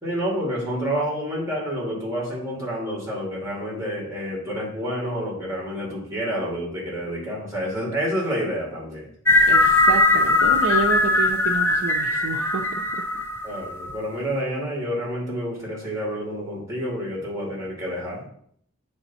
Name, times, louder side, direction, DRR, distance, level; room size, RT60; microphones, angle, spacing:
voice 1, 0.0-9.1 13.4-18.2, equal, 15° right, -3 dB, 2.3 m, -29 dB
sound 1, 9.3-14.0, left 2 dB, 10° left, 0.4 m, -20 dB
voice 2, 9.5-12.8, right 4 dB, 70° right, 1 dB, 0.6 m, -29 dB
8.1 x 3.5 x 4.2 m, 0.64 s
head